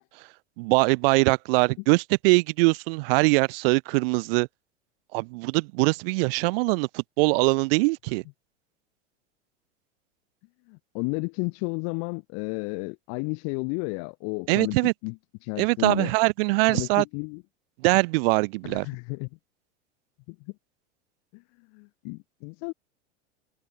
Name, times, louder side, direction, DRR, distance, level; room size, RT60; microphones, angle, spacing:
voice 1, 0.6-4.5 5.1-8.2 14.5-14.9 15.6-17.0 17.8-18.9, right 27 dB, 55° right, 0.5 m, -22 dB
voice 2, 10.7-14.8 15.0-15.2 15.4-16.1 16.7-17.4 18.7-19.3 20.3-20.4 21.3-21.4 21.7-22.7, left 40 dB or more, 50° left, 0.9 m, -32 dB
hypercardioid pair, 100°, 34 cm